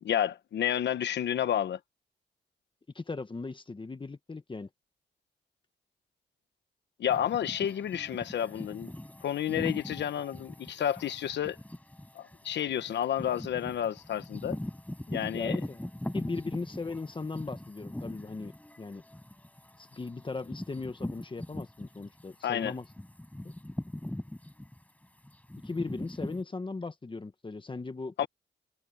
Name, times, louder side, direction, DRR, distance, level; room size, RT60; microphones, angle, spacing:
voice 1, 0.0-1.8 7.0-8.9 9.2-11.6 12.1-14.6 15.1-15.6 22.4-22.7 28.2-28.3, left 10 dB, 90° left, 1.1 m, -30 dB
voice 2, 2.9-4.7 15.3-15.8 16.1-19.0 19.8-22.8 23.4-23.5 25.6-28.3, left 3 dB, 30° left, 1.4 m, -38 dB
sound 1, 7.1-22.2 22.6-26.4, left 1 dB, 10° left, 4.7 m, -41 dB
cardioid pair, 90°, 18 cm